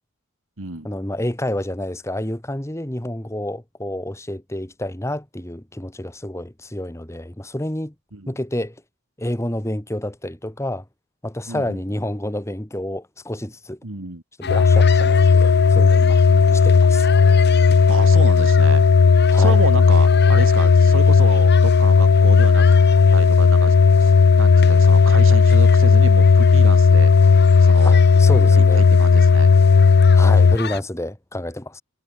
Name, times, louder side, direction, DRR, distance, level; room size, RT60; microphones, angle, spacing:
voice 1, 0.8-7.9 8.3-8.8 9.2-10.9 11.2-13.8 14.4-16.2 16.5-17.1 19.3-19.6 27.8-28.8 30.1-31.8, left 1 dB, 15° left, 1.8 m, -29 dB
voice 2, 11.5-11.8 13.8-14.2 16.3-16.6 17.9-18.8 19.3-22.7 23.1-28.0 28.5-29.5, right 3 dB, 70° right, 1.8 m, -30 dB
sound 1, 14.4-30.8, left 5 dB, 50° left, 2.8 m, -36 dB
sound 2, 14.5-30.6, left 5 dB, 80° left, 0.5 m, -13 dB
head